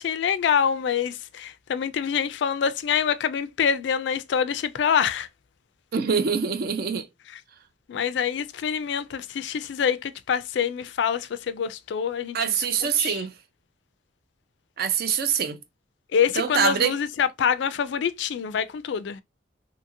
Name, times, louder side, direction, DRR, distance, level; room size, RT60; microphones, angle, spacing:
voice 1, 0.0-5.3 7.3-7.4 7.9-12.6 13.0-13.2 16.1-19.2, left 7 dB, 65° left, 0.3 m, -26 dB
voice 2, 5.9-7.1 12.3-13.3 14.8-15.6 16.4-17.0, right 7 dB, 50° right, 0.4 m, -24 dB
2.8 x 2.7 x 2.5 m
head